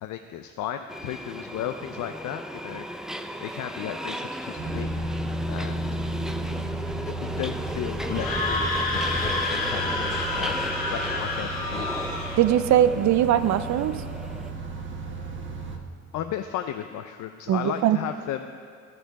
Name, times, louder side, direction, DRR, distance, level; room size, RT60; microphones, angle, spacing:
voice 1, 0.0-2.9 3.4-4.9 5.5-5.9 6.9-10.6 10.9-11.9 16.1-18.5, left 11 dB, 75° left, 7 dB, 0.5 m, -34 dB
Subway metro underground, 0.9-14.5, equal, ahead, 0.4 m, -36 dB
sound 1, 4.6-15.8, right 1 dB, 40° right, 1.2 m, -34 dB
Screaming, 8.0-12.4, left 2 dB, 40° left, 2.8 m, -29 dB
voice 2, 12.4-14.0 17.5-18.0, right 11 dB, 70° right, 12 dB, 0.5 m, -21 dB
13.5 x 6.7 x 4.7 m, 2.2 s
cardioid pair, 90°, 30 cm